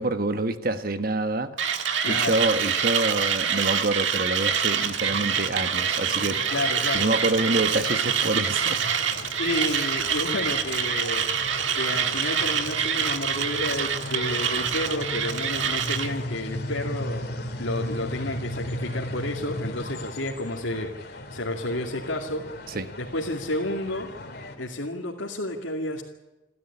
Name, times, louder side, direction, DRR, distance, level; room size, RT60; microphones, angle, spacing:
voice 1, 0.0-1.6 2.0-6.4 6.9-8.8 22.7-22.9, right 2 dB, 50° right, 9 dB, 1.2 m, -26 dB
Mechanisms, 1.6-16.1, right 7 dB, 75° right, 1.7 m, -26 dB
voice 2, 2.0-2.4 6.5-7.1 9.4-11.3 11.7-17.3 17.6-22.5 23.0-24.1 24.6-26.0, left 1 dB, 85° left, -2 dB, 2.5 m, -31 dB
sound 1, 4.8-24.6, left 1 dB, 50° left, 2.8 m, -37 dB
29.0 x 13.0 x 9.9 m, 1.1 s
head